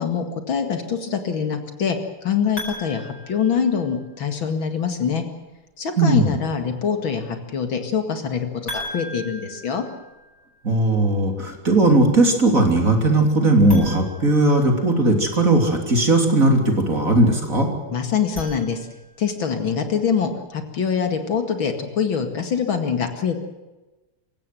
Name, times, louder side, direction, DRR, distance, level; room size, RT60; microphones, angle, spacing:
voice 1, 0.0-5.2 5.8-8.5 8.7-9.8 17.9-18.9 19.2-23.4, left 6 dB, 65° left, 6 dB, 2.8 m, -24 dB
sound 1, 2.6-4.3 8.7-10.7 13.6-15.2 18.1-19.3, left 1 dB, 35° left, 7.3 m, -38 dB
voice 2, 6.0-6.3 10.6-17.7, right 2 dB, 35° right, 3 dB, 3.7 m, -18 dB
26.5 x 16.0 x 7.8 m, 1.1 s
omnidirectional pair, 2.4 m